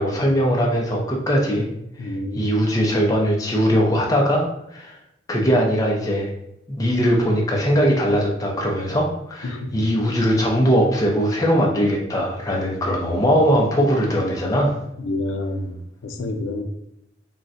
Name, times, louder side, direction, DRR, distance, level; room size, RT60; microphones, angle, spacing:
voice 1, 0.0-1.7 2.0-2.1 2.3-5.0 5.3-6.3 6.7-14.8, equal, 20° left, -1 dB, 0.5 m, -20 dB
voice 2, 2.0-2.6 9.4-9.9 13.1-13.2 15.0-15.8 16.0-16.6, left 2 dB, 90° left, 5 dB, 0.4 m, -28 dB
3.8 x 2.1 x 2.5 m, 0.78 s
head